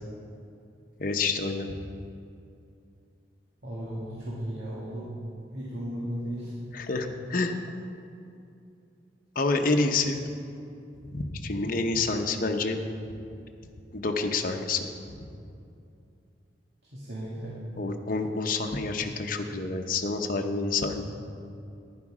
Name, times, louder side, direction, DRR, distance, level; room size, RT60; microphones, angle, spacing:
voice 1, 1.0-1.7 6.7-7.6 9.3-10.2 11.1-12.8 13.9-15.2 17.8-21.0, left 3 dB, 55° left, 4 dB, 0.9 m, -28 dB
voice 2, 3.6-5.1 5.5-6.6 16.9-17.6, equal, 75° right, -7 dB, 2.2 m, -35 dB
11.5 x 10.5 x 4.9 m, 2.5 s
head